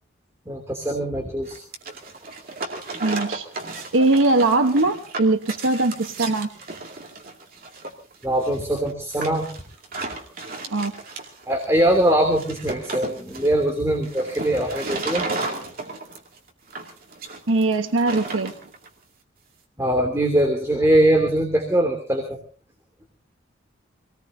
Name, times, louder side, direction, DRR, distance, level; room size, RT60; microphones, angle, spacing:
voice 1, 0.5-1.6 8.2-9.5 11.5-15.3 19.8-22.4, right 1 dB, 15° right, 1 dB, 3.0 m, -21 dB
sound 1, 1.5-18.9, right 3 dB, 45° right, 2.4 m, -34 dB
voice 2, 3.0-3.5 3.9-6.5 10.7-10.9 17.5-18.5, right 2 dB, 85° right, 7 dB, 1.1 m, -20 dB
26.5 x 19.0 x 2.7 m, 0.36 s
head